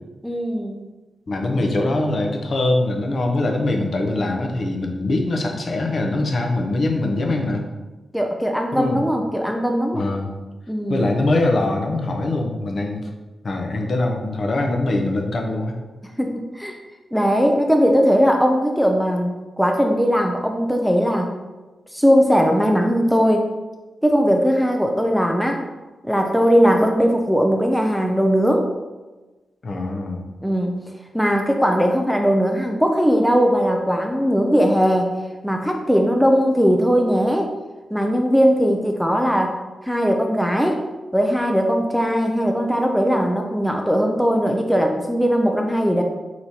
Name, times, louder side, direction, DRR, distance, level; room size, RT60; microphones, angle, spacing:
voice 1, 0.2-0.8 8.1-10.1 10.7-11.1 16.2-16.8 17.1-19.3 19.6-21.3 21.9-23.5 24.0-25.6 26.0-28.7 30.4-30.8 31.1-35.1 35.4-37.5 37.9-39.5 39.8-40.8 41.1-46.0, equal, ahead, 2 dB, 0.3 m, -19 dB
voice 2, 1.3-7.6 8.7-9.0 9.9-10.3 10.9-13.1 13.4-15.8 29.6-30.3, left 2 dB, 45° left, 2 dB, 0.6 m, -22 dB
4.5 x 3.8 x 2.8 m, 1.2 s
wide cardioid pair, 135°, 0 cm